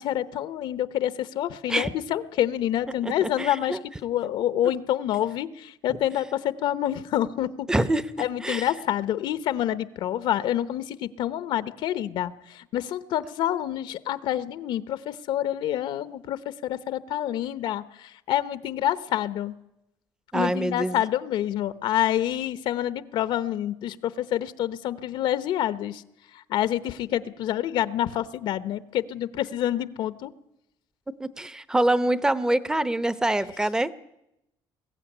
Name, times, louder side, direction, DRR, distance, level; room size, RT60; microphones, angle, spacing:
voice 1, 0.0-7.7 8.2-19.5 20.3-26.0 26.3-30.3, left 11 dB, 70° left, 14 dB, 0.9 m, -27 dB
voice 2, 3.0-3.8 7.7-8.0 8.4-8.7 20.3-21.0 31.2-33.9, right 1 dB, 10° right, 15 dB, 0.8 m, -25 dB
21.5 x 15.5 x 9.9 m, 0.86 s
cardioid pair, 135°, 9 cm